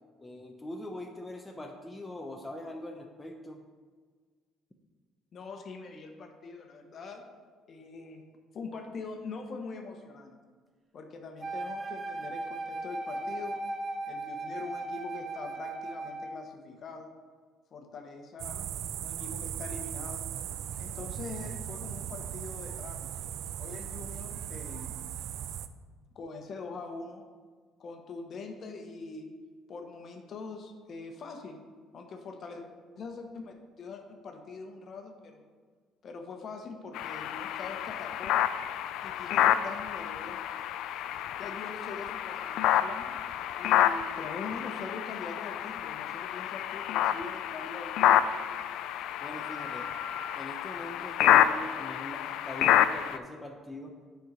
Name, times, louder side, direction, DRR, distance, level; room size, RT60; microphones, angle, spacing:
voice 1, 0.2-3.6 49.2-49.9 50.3-54.0, left 1 dB, 15° left, 2 dB, 0.7 m, -42 dB
voice 2, 5.3-7.2 7.7-8.2 8.5-10.4 10.9-13.6 14.1-17.1 17.7-18.7 19.0-20.3 20.8-23.1 23.6-25.0 26.1-27.3 27.8-29.3 29.7-31.6 31.9-32.6 33.0-35.4 36.0-38.4 39.0-40.4 41.4-43.2 43.6-48.5, left 4 dB, 50° left, 4 dB, 1.0 m, -43 dB
Wind instrument woodwind instrument, 11.4-16.5, right 2 dB, 30° right, 0.7 m, -37 dB
sound 1, 18.4-25.7, right 10 dB, 70° right, 0.4 m, -38 dB
sound 2, 36.9-53.2, left 11 dB, 75° left, 0.3 m, -28 dB
7.8 x 4.6 x 5.1 m, 1.5 s
cardioid pair, 100°, 0 cm